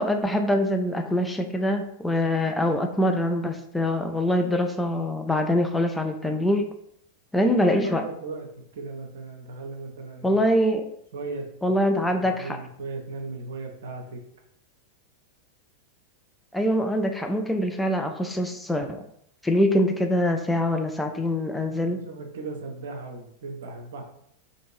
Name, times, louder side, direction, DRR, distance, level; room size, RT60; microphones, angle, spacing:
voice 1, 0.0-6.7 7.3-8.0 10.2-10.8 11.6-12.6 16.5-19.0 19.4-22.0, left 1 dB, 5° left, 5 dB, 0.4 m, -24 dB
voice 2, 7.4-8.5 8.7-10.4 11.1-11.4 12.2-14.2 21.8-24.0, right 3 dB, 60° right, 3 dB, 0.6 m, -37 dB
2.6 x 2.6 x 3.0 m, 0.70 s
figure-of-eight pair, 90°, 0 cm